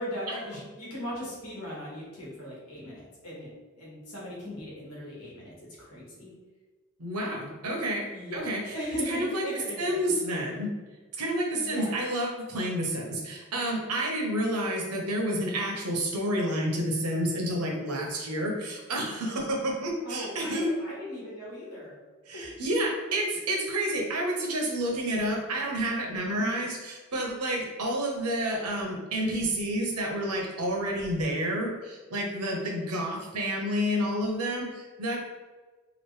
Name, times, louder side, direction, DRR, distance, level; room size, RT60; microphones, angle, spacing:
voice 1, 0.0-6.3 8.1-10.0 11.6-12.0 20.0-22.0 22.3-22.6 26.4-26.7 32.6-33.0, left 1 dB, 80° left, -5 dB, 1.3 m, -38 dB
voice 2, 7.0-8.7 9.1-9.4 9.8-10.7 11.2-20.7 22.3-35.2, right 1 dB, 90° right, 0 dB, 0.8 m, -29 dB
3.0 x 2.5 x 3.2 m, 1.3 s
head